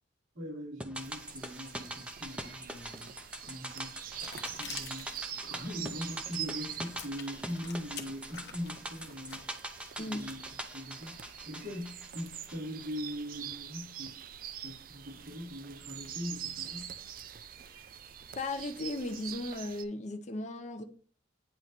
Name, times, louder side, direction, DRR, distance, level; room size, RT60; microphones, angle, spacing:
voice 1, 0.3-3.1 3.4-5.1 5.4-9.4 9.9-14.1 14.6-16.9, equal, 90° right, 3.6 m, -41 dB
sound 1, 0.8-13.2 13.4-13.5, right 1 dB, 5° right, 0.6 m, -43 dB
sound 2, 0.9-19.8, right 10 dB, 50° right, 0.4 m, -45 dB
sound 3, 3.9-9.5, left 6 dB, 60° left, 1.1 m, -48 dB
voice 2, 18.3-20.8, left 2 dB, 40° left, 0.7 m, -36 dB
9.3 x 3.1 x 4.2 m
head